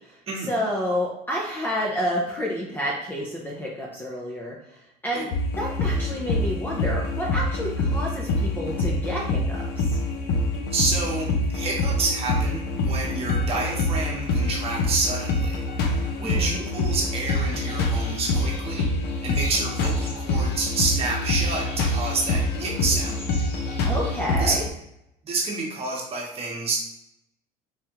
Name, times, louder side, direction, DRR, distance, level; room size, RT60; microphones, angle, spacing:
voice 1, 0.5-4.5 5.0-5.3 5.6-10.0 16.2-16.6 22.6-22.8 23.9-24.6, equal, 10° left, -4 dB, 0.5 m, -29 dB
sound 1, 5.3-24.7, left 2 dB, 60° left, 0.6 m, -26 dB
voice 2, 10.7-18.9 19.2-23.1 24.4-24.5 25.2-26.8, right 3 dB, 35° right, -2 dB, 1.0 m, -28 dB
sound 2, 17.2-24.2, left 1 dB, 30° left, 1.0 m, -44 dB
3.5 x 3.2 x 2.8 m, 0.82 s
cardioid pair, 140°, 18 cm